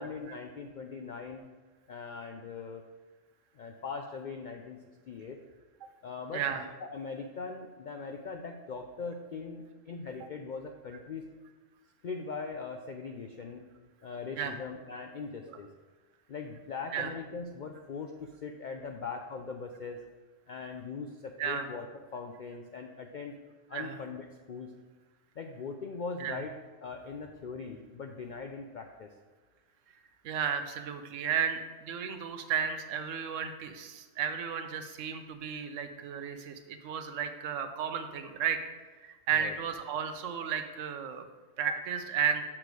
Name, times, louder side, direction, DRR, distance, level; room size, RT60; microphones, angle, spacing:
voice 1, 0.0-1.4 1.9-2.8 3.5-4.8 5.1-5.4 6.0-6.4 6.8-11.3 12.0-13.6 14.0-15.7 16.3-20.0 20.5-23.3 23.7-24.7 25.4-26.5 26.8-29.1 39.4-39.5, left 4 dB, 60° left, 4 dB, 0.5 m, -40 dB
voice 2, 6.3-6.6 14.4-14.5 15.5-15.6 16.9-17.1 21.4-21.7 23.7-24.0 26.2-26.4 30.2-38.6 39.0-41.2 41.6-42.4, right 7 dB, 90° right, 8 dB, 1.1 m, -33 dB
6.6 x 6.0 x 4.7 m, 1.3 s
omnidirectional pair, 1.3 m